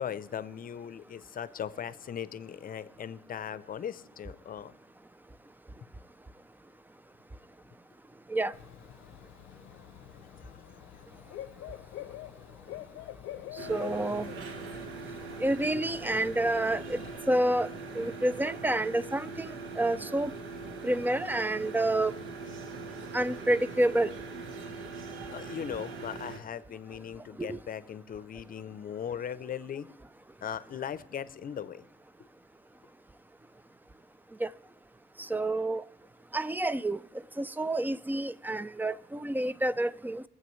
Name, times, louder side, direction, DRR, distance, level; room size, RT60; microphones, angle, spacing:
voice 1, 0.0-4.7 10.4-10.5 10.9-11.0 15.8-15.9 25.3-29.9 30.4-31.8, left 8 dB, 45° left, 0.6 m, -38 dB
Bird / Cricket, 8.5-17.2, left 13 dB, 85° left, 0.6 m, -46 dB
sound 1, 13.6-26.4, right 4 dB, 85° right, 1.2 m, -41 dB
voice 2, 13.7-14.3 15.4-17.0 17.3-17.7 18.0-20.3 20.8-22.1 23.1-24.1 27.4-27.6 34.4-34.5 35.2-35.8 36.3-37.0 37.4-40.2, right 1 dB, 10° right, 0.3 m, -28 dB
22.5 x 7.7 x 3.1 m
cardioid pair, 90°, 20 cm